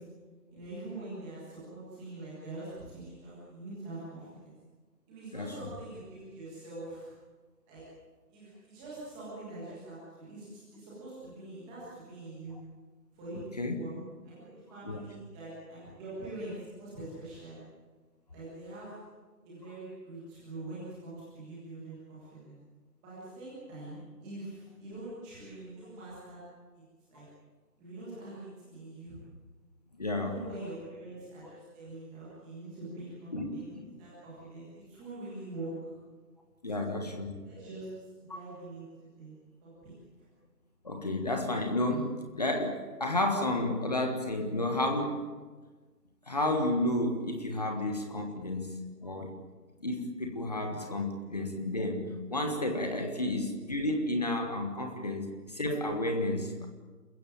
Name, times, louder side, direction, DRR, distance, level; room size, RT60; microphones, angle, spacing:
voice 1, 0.5-4.5 5.1-7.1 7.7-7.8 8.3-12.6 13.1-13.4 13.7-13.9 14.2-17.6 18.3-18.9 19.4-22.6 23.0-26.4 26.7-26.8 27.1-27.2 27.8-29.2 30.1-35.7 36.7-37.1 37.4-37.9 38.3-38.8 39.2-39.3 39.6-39.9, right 2 dB, ahead, -10 dB, 1.5 m, -44 dB
voice 2, 5.3-5.7 12.5-12.6 13.6-13.8 14.8-15.0 30.0-30.4 33.3-33.8 36.6-37.4 40.8-45.3 46.3-49.3 49.8-56.7, left 1 dB, 25° left, 4 dB, 1.6 m, -31 dB
29.0 x 15.5 x 8.8 m, 1.3 s
figure-of-eight pair, 165°, 50 cm